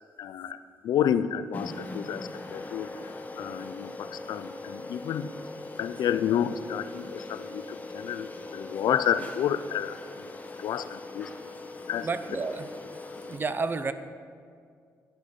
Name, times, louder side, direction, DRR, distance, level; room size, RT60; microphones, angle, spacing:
voice 1, 0.2-0.6 0.8-5.3 5.8-10.3 10.6-11.3 11.9-12.1, left 9 dB, 80° left, 13 dB, 0.5 m, -30 dB
sound 1, 1.5-13.4, left 2 dB, 25° left, 1.0 m, -41 dB
voice 2, 12.0-12.7 13.3-13.9, right 4 dB, 30° right, 12 dB, 0.6 m, -30 dB
11.5 x 10.5 x 5.3 m, 2.2 s
cardioid pair, 130°, 7 cm